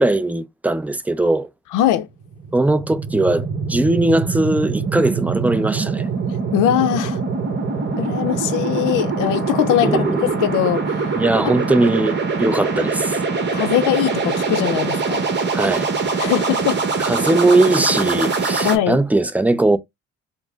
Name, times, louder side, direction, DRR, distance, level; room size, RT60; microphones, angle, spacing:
voice 1, 0.0-1.5 2.5-6.0 9.8-10.3 11.1-13.2 15.5-15.9 17.0-19.8, right 2 dB, 5° right, 0.4 m, -19 dB
voice 2, 1.7-2.1 6.5-7.2 8.0-11.1 11.4-11.6 13.5-15.3 16.2-16.8 18.6-19.0, left 12 dB, 90° left, 0.5 m, -21 dB
sound 1, 2.2-18.7, right 4 dB, 35° right, 0.9 m, -23 dB
4.0 x 2.0 x 3.3 m
cardioid pair, 90°, 30 cm